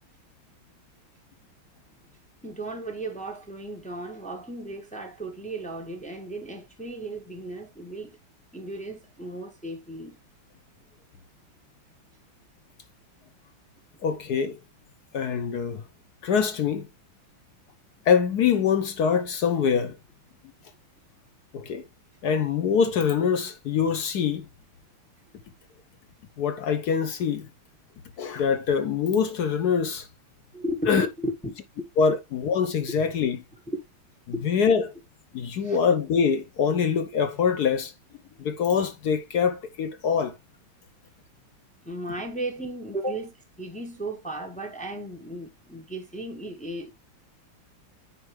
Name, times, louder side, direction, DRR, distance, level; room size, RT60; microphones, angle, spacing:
voice 1, 2.4-8.2 8.5-10.2 30.5-31.5 31.8-31.9 33.7-33.8 34.3-34.4 35.6-35.8 41.8-46.9, right 1 dB, 5° left, 0.8 m, -35 dB
voice 2, 14.0-14.6 15.1-15.8 16.2-16.9 18.1-20.0 21.5-21.8 22.2-24.5 26.4-27.5 28.2-30.1 30.9-31.1 32.0-33.4 34.4-34.9 35.3-37.9 38.4-40.4, left 6 dB, 65° left, 1.1 m, -24 dB
9.0 x 4.6 x 3.2 m
omnidirectional pair, 2.2 m